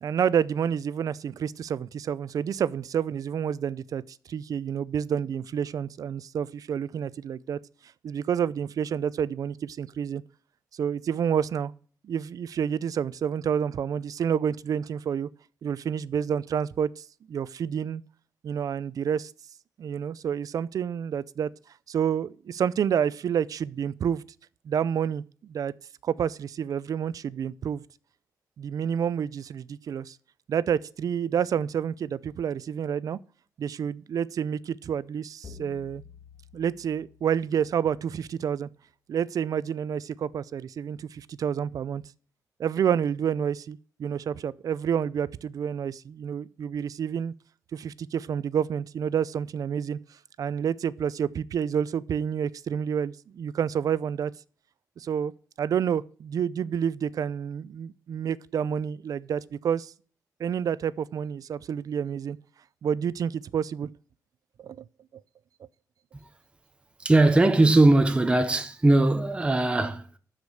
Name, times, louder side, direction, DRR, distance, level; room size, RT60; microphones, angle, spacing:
voice 1, 0.0-7.6 8.0-10.2 10.7-11.7 12.0-15.3 15.6-18.0 18.4-19.3 19.8-21.5 21.9-24.2 24.6-25.7 26.0-27.8 28.6-30.2 30.5-33.2 33.6-36.0 36.5-38.7 39.1-42.0 42.6-47.3 47.7-50.0 50.4-54.3 55.0-55.3 55.6-59.9 60.4-62.4 62.8-63.9 64.6-64.8, right 8 dB, 65° right, 0.5 m, -29 dB
sound 1, 35.4-37.9, left 4 dB, 50° left, 1.5 m, -49 dB
voice 2, 67.0-70.2, right 2 dB, 15° right, 0.8 m, -20 dB
12.5 x 5.1 x 7.0 m
wide cardioid pair, 135°, 6 cm